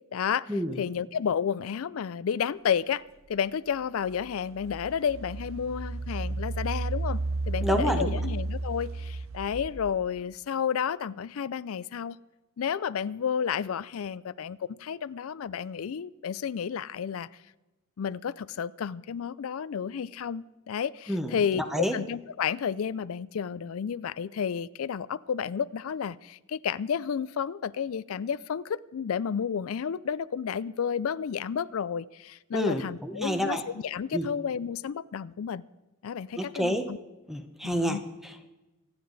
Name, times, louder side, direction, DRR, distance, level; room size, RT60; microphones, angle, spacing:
voice 1, 0.1-0.5 0.8-3.0 3.3-7.2 7.5-12.2 12.6-17.3 18.0-35.6 36.0-37.0 37.6-38.0, left 7 dB, 85° left, 18 dB, 0.4 m, -31 dB
Engine, 3.4-3.5 4.1-10.0, right 3 dB, 80° right, 1.0 m, -33 dB
voice 2, 7.6-8.2 21.1-21.9 32.5-33.6 34.1-34.3 36.4-36.8 37.3-38.5, equal, ahead, 7 dB, 1.0 m, -29 dB
25.5 x 9.6 x 4.0 m, 1.1 s
head